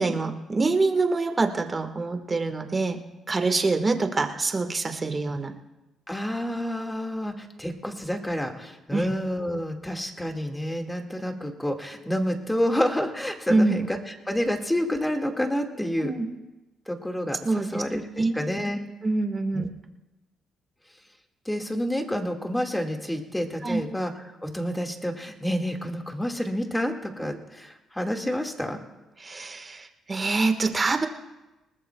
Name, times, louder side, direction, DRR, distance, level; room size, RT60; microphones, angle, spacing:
voice 1, 0.0-3.0 3.3-5.5 8.9-9.1 13.5-13.8 16.0-16.3 17.4-17.8 18.2-18.4 19.0-19.7 23.6-23.8 29.2-31.1, right 3 dB, 30° right, 5 dB, 1.5 m, -25 dB
voice 2, 6.1-16.1 16.9-18.8 19.5-19.6 21.5-24.1 24.4-28.8, equal, 10° left, 3 dB, 1.9 m, -29 dB
21.0 x 19.5 x 2.3 m, 1.0 s
cardioid pair, 90°, 0 cm